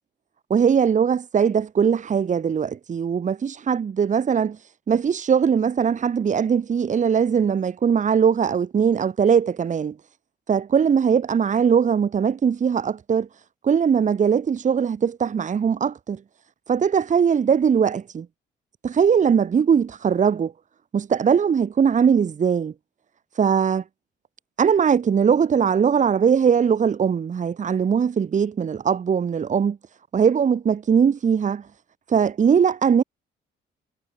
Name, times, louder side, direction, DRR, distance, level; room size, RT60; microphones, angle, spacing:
voice 1, 0.5-4.6 4.9-10.0 10.5-13.3 13.6-16.2 16.7-18.3 18.8-20.5 20.9-22.7 23.4-23.8 24.6-29.8 30.1-31.6 32.1-33.0, right 7 dB, 40° right, 1.0 m, -20 dB
cardioid pair, 90°, 20 cm